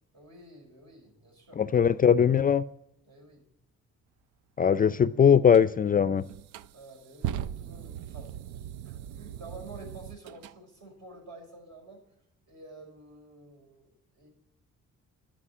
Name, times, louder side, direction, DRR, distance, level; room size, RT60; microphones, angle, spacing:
voice 1, 0.1-1.6 3.1-3.5 6.7-12.0 12.5-14.3, right 2 dB, 65° right, 1 dB, 5.5 m, -50 dB
voice 2, 1.6-2.6 4.6-6.2, left 7 dB, 30° left, 14 dB, 0.4 m, -21 dB
sound 1, 5.5-5.7 6.3-10.6, right 10 dB, 80° right, 0.5 m, -39 dB
11.5 x 6.2 x 7.4 m, 0.82 s
cardioid pair, 90°, 30 cm